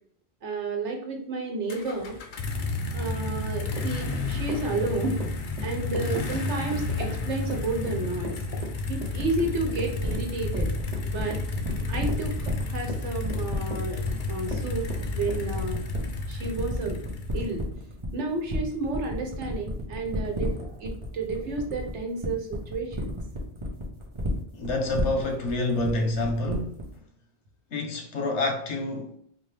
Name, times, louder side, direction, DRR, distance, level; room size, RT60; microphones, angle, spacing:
voice 1, 0.4-2.2 2.9-5.2 5.6-8.6 8.9-10.7 11.0-11.4 11.9-12.4 12.6-14.0 14.3-15.8 16.3-17.0 17.3-17.6 18.1-23.2, right 3 dB, 90° right, 1.2 m, -31 dB
sound 1, 1.7-17.7, left 3 dB, 55° left, 0.7 m, -32 dB
Run / Walk footsteps, 3.7-15.4, right 2 dB, 50° right, 0.6 m, -39 dB
sound 2, 9.2-26.9, equal, 30° right, 0.8 m, -33 dB
voice 2, 24.5-26.7 27.7-29.2, left 2 dB, 80° left, 1.2 m, -27 dB
4.2 x 2.6 x 3.2 m
omnidirectional pair, 1.2 m